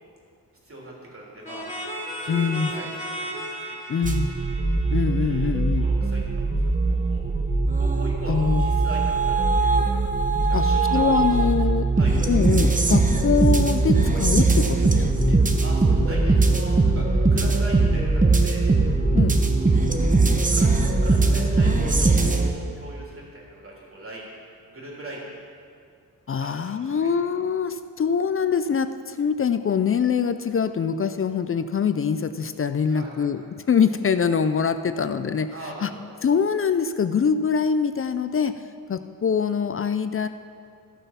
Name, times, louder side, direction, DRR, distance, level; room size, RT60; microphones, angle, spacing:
voice 1, 0.6-1.7 2.2-3.3 3.9-4.0 5.2-6.2 6.9-7.2 7.7-9.7 10.5-11.0 11.9-12.1 15.6-18.6 19.7-20.0 20.5-24.4 24.7-25.2 26.4-27.1 32.9-33.3 35.5-36.0, right 1 dB, 35° right, -4 dB, 3.1 m, -39 dB
sound 1, 1.4-6.0, equal, 20° left, 2.5 m, -35 dB
voice 2, 2.3-2.7 3.9-4.3 4.9-5.8 8.3-8.7 10.5-10.6 10.9-11.9 12.3-15.4 19.1-19.4 21.3-22.0 26.3-35.5 35.8-35.9 36.2-38.6 38.9-40.3, left 6 dB, 40° left, 11 dB, 0.4 m, -24 dB
sound 2, 4.0-22.5, right 3 dB, 20° right, 0.9 m, -20 dB
14.0 x 6.8 x 5.7 m, 2.3 s
wide cardioid pair, 105°, 36 cm